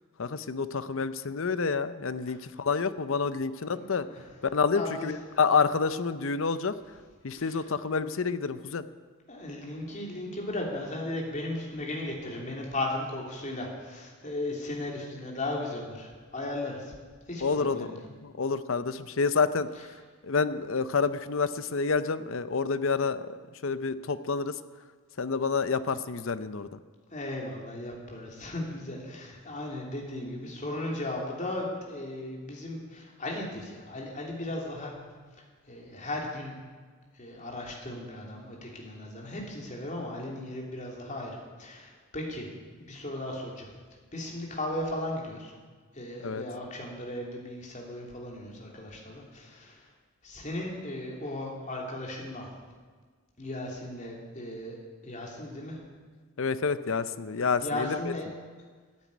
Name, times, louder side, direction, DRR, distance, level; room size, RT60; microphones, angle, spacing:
voice 1, 0.2-4.1 4.4-6.7 7.2-8.9 17.4-19.7 20.2-23.4 23.6-24.6 25.2-26.8 46.2-46.4 56.4-58.1, left 5 dB, 65° left, 14 dB, 0.6 m, -28 dB
voice 2, 3.7-4.2 4.7-5.1 7.4-7.6 9.3-16.9 17.3-18.0 27.1-34.9 35.7-36.5 37.1-42.5 42.8-43.7 44.1-45.5 45.9-49.9 50.2-52.5 53.4-54.8 55.0-55.8 57.6-58.3, left 1 dB, 35° left, -1 dB, 3.0 m, -36 dB
13.5 x 9.4 x 9.4 m, 1.5 s
head